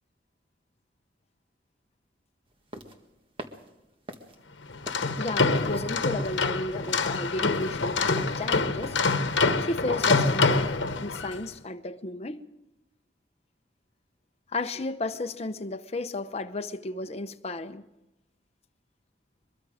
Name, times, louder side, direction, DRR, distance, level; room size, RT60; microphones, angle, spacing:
sound 1, 2.5-9.8, right 1 dB, 30° right, 1.6 m, -44 dB
sound 2, 4.7-11.4, left 3 dB, 80° left, 1.1 m, -26 dB
voice 1, 5.2-9.0 9.6-10.7 11.0-12.4 14.5-17.8, left 2 dB, 35° left, 0.9 m, -33 dB
23.0 x 22.5 x 5.0 m
head